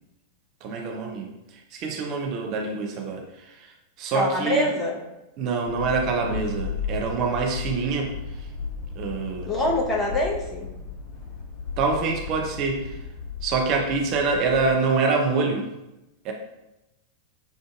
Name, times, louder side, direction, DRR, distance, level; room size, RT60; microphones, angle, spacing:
voice 1, 0.6-3.7 4.0-4.7 5.4-8.5 9.0-9.5 11.8-13.0 13.4-15.7 16.2-16.3, right 4 dB, 40° right, 1 dB, 0.5 m, -26 dB
voice 2, 4.1-4.9 9.5-10.6, left 1 dB, 20° left, -2 dB, 1.0 m, -24 dB
sound 1, 5.6-14.7, left 5 dB, 45° left, 1.0 m, -35 dB
6.2 x 2.5 x 2.4 m, 0.95 s
figure-of-eight pair, 90°, 0 cm